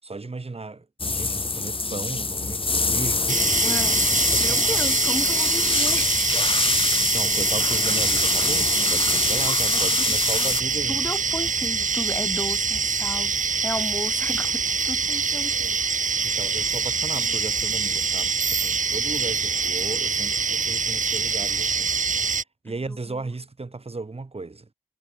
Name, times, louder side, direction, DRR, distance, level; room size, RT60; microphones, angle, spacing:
voice 1, 0.0-3.8 4.3-4.8 6.9-11.0 16.2-22.0 22.6-24.7, right 3 dB, 45° right, 6.6 m, -35 dB
sound 1, 1.0-10.6, left 3 dB, 40° left, 1.5 m, -24 dB
sound 2, 3.3-22.4, right 5 dB, 65° right, 1.4 m, -25 dB
voice 2, 3.6-4.0 4.4-6.3 9.7-10.5 10.9-13.4 13.6-15.8 16.2-16.4 17.1-17.4 22.9-23.3, left 1 dB, 15° left, 4.1 m, -34 dB
cardioid pair, 50°, 14 cm